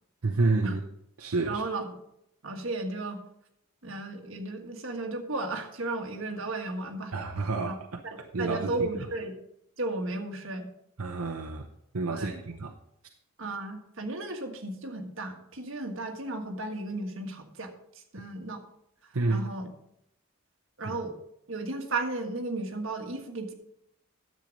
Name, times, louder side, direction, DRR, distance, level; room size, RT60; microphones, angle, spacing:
voice 1, 0.2-0.8 1.2-1.6 7.1-8.0 8.3-8.9 11.0-11.7 11.9-12.8 19.1-19.5 20.9-21.0, right 3 dB, 85° right, 0.8 m, -29 dB
voice 2, 1.5-1.9 2.4-3.2 3.8-7.1 7.6-7.8 8.0-9.3 9.8-10.7 12.1-12.4 13.4-18.6 19.3-19.7 20.8-21.2 21.5-23.5, right 2 dB, 65° right, 1.5 m, -34 dB
10.5 x 7.6 x 5.2 m
head